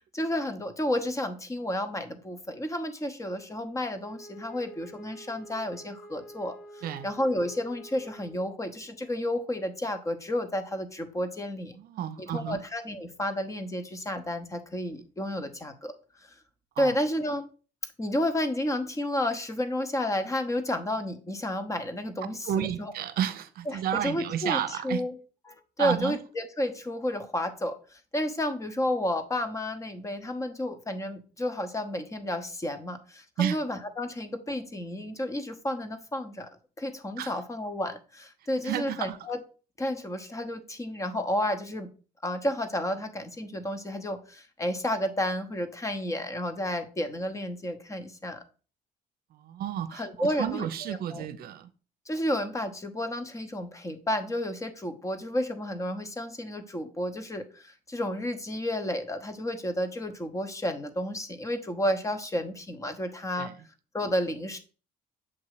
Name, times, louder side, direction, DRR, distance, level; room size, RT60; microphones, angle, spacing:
voice 1, 0.0-11.7 12.2-15.9 16.8-17.4 18.0-22.9 23.7-25.2 25.5-36.5 36.8-39.4 39.8-41.9 42.2-48.4 49.9-51.3 52.1-63.5 63.9-64.6, left 1 dB, 20° left, 0.9 m, -31 dB
Wind instrument woodwind instrument, 4.0-8.6, right 1 dB, 65° left, 0.9 m, -48 dB
voice 2, 11.8-12.6 16.8-16.9 22.4-25.0 25.8-26.2 33.4-33.6 37.2-37.3 38.6-39.2 49.3-51.7 63.4-63.5, right 10 dB, 65° right, 0.7 m, -31 dB
7.4 x 2.9 x 4.8 m
cardioid pair, 110°, 17 cm